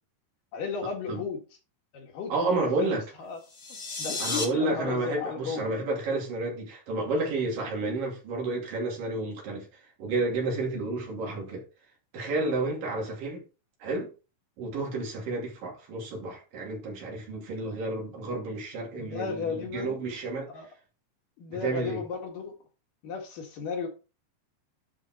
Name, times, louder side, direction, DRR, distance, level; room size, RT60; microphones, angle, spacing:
voice 1, 0.5-1.4 1.9-3.4 4.0-5.6 19.0-20.0 20.5-20.7 21.4-22.5 23.0-23.9, left 5 dB, 75° left, 3.4 m, -35 dB
voice 2, 2.3-3.0 4.2-9.7 10.0-11.7 12.1-13.4 13.8-14.1 14.6-20.5 21.5-22.0, right 2 dB, 75° right, 4.4 m, -31 dB
sound 1, 3.4-4.4, left 3 dB, 35° left, 1.7 m, -33 dB
11.0 x 4.6 x 4.3 m
omnidirectional pair, 3.9 m